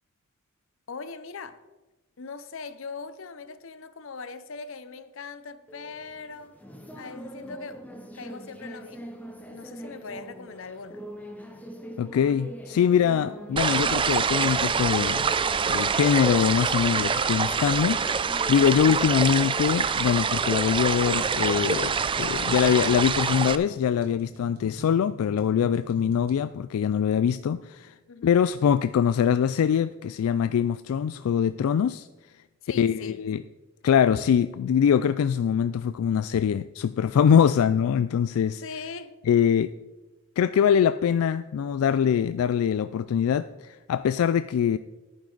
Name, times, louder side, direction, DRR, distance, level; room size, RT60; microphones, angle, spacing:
voice 1, 0.9-1.6 2.2-6.6 7.0-7.9 8.1-9.1 9.5-11.1 28.1-28.4 32.6-33.2 38.5-39.2, left 4 dB, 65° left, 0.7 m, -40 dB
sound 1, 5.7-24.1, equal, 5° left, 0.8 m, -44 dB
voice 2, 12.0-15.3 15.7-27.9 28.2-32.1 32.7-33.4 33.8-38.6 39.3-39.7 40.4-44.8, left 8 dB, 85° left, 0.3 m, -23 dB
sound 2, 13.6-23.6, right 6 dB, 25° right, 0.4 m, -25 dB
sound 3, 21.5-26.4, right 2 dB, 90° right, 1.7 m, -46 dB
11.0 x 9.4 x 3.9 m
head